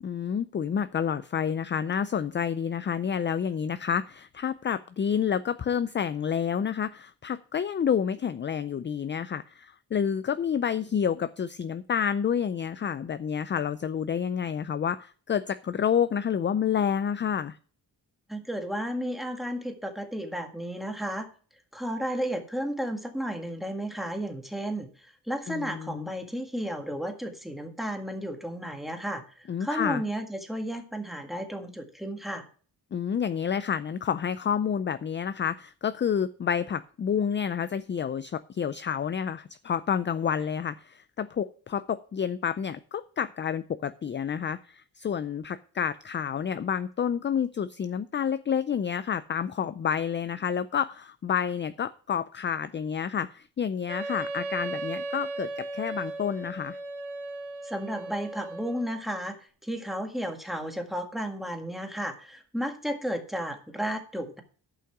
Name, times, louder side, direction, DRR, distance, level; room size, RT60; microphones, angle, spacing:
voice 1, 0.0-17.6 25.5-26.1 29.5-30.0 32.9-56.8, left 8 dB, 30° left, 13 dB, 0.4 m, -29 dB
voice 2, 18.3-21.3 21.7-24.9 25.3-32.5 57.6-64.4, equal, ahead, 4 dB, 1.8 m, -33 dB
Wind instrument woodwind instrument, 53.9-58.9, right 2 dB, 50° right, 3.2 m, -36 dB
11.0 x 5.8 x 5.9 m, 0.42 s
cardioid pair, 100°, 42 cm